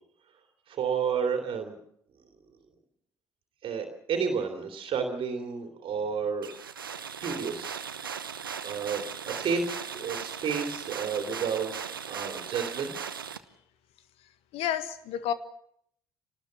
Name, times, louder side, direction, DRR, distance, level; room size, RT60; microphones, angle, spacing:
voice 1, 0.7-1.7 3.6-6.5 7.2-7.8 8.6-11.8 12.0-13.0, right 6 dB, 50° right, 2.9 m, -31 dB
sound 1, 6.4-13.4, right 7 dB, 85° right, 0.9 m, -38 dB
voice 2, 14.5-15.3, left 10 dB, 60° left, 1.5 m, -30 dB
26.5 x 19.0 x 7.1 m
figure-of-eight pair, 50°, 11 cm